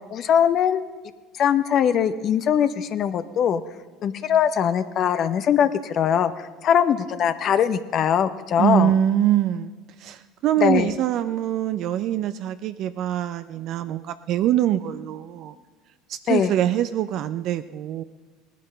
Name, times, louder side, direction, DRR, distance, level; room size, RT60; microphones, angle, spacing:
voice 1, 0.1-0.8 1.3-3.6 4.0-8.9 10.6-10.9 16.3-16.5, left 8 dB, 50° left, 11 dB, 0.7 m, -21 dB
voice 2, 8.6-9.7 10.0-15.5 16.1-18.0, right 11 dB, 55° right, 11 dB, 0.5 m, -24 dB
17.5 x 11.5 x 5.5 m, 1.4 s
hypercardioid pair, 75°, 0 cm